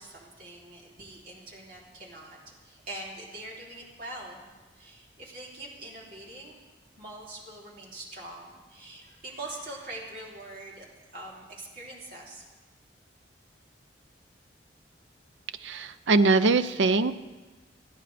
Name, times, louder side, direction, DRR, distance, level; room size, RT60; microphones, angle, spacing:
voice 1, 0.0-2.4 2.6-4.5 4.7-6.6 7.0-12.4, right 2 dB, 50° right, -4 dB, 3.3 m, -43 dB
voice 2, 15.6-17.1, right 3 dB, 85° right, 11 dB, 0.6 m, -22 dB
28.5 x 9.9 x 3.4 m, 1.3 s
head